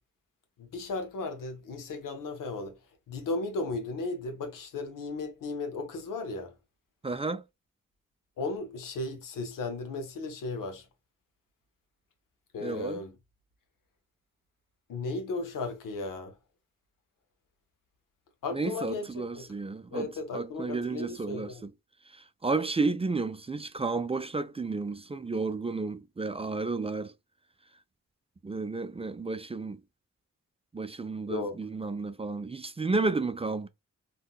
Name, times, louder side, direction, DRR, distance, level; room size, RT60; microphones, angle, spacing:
voice 1, 0.6-2.8 3.1-6.5 8.4-10.9 12.5-13.1 14.9-16.4 18.4-19.5 19.9-21.6 31.3-31.6, left 3 dB, 85° left, 0.8 m, -35 dB
voice 2, 7.0-7.4 12.6-13.0 18.5-21.7 22.1-27.1 28.4-29.8 30.7-33.7, right 3 dB, 20° right, 0.4 m, -32 dB
3.6 x 2.3 x 2.3 m
supercardioid pair, 40°, 32 cm